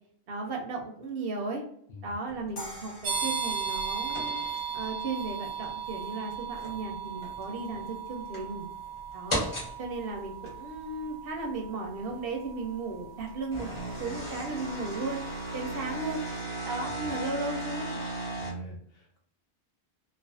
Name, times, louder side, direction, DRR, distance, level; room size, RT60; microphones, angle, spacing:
voice 1, 0.3-1.6 2.0-4.4 4.7-8.7 9.1-9.4 9.8-13.7 14.0-15.2 15.5-16.2 16.6-18.0, right 3 dB, 65° right, 1 dB, 0.7 m, -35 dB
sound 1, 2.3-2.6 4.1-5.3 5.7-5.8 6.4-6.9 7.2-7.8 8.3-8.4 9.3-9.7 10.4-10.6 12.1-12.2 13.3-18.5, right 1 dB, 30° left, 0.8 m, -36 dB
sound 2, 2.6-5.6, left 1 dB, 90° left, 1.2 m, -47 dB
sound 3, 3.0-15.6, right 6 dB, 90° right, 0.9 m, -37 dB
voice 2, 18.4-19.2, left 1 dB, 65° left, 0 dB, 0.9 m, -45 dB
2.4 x 2.4 x 2.3 m, 0.64 s
omnidirectional pair, 1.2 m